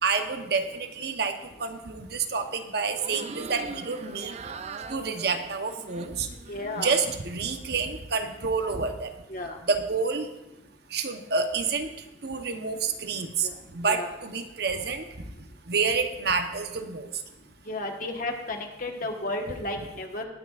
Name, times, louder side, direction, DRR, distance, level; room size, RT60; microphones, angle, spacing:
voice 1, 0.0-4.4 4.9-6.3 6.8-9.1 9.6-10.3 10.9-11.9 12.2-15.0 15.7-17.1, right 5 dB, 60° right, 6 dB, 0.9 m, -28 dB
sound 1, 2.9-7.4 7.7-8.4, right 4 dB, 35° right, 0.4 m, -42 dB
voice 2, 6.5-6.9 9.3-9.6 13.4-13.6 13.9-14.1 17.7-20.2, left 2 dB, 45° left, 3 dB, 1.3 m, -33 dB
20.5 x 9.5 x 2.5 m, 0.95 s
head